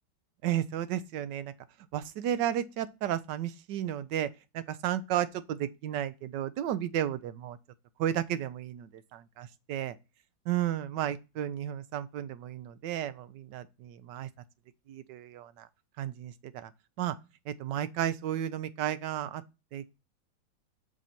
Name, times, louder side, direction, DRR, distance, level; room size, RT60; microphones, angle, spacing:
voice 1, 0.4-1.5 1.9-4.3 4.5-7.6 8.0-10.0 10.5-14.3 14.9-15.7 16.0-16.7 17.0-17.2 17.5-19.4 19.7-19.9, right 11 dB, 75° right, 1.2 m, -33 dB
6.3 x 4.0 x 5.7 m
omnidirectional pair, 2.1 m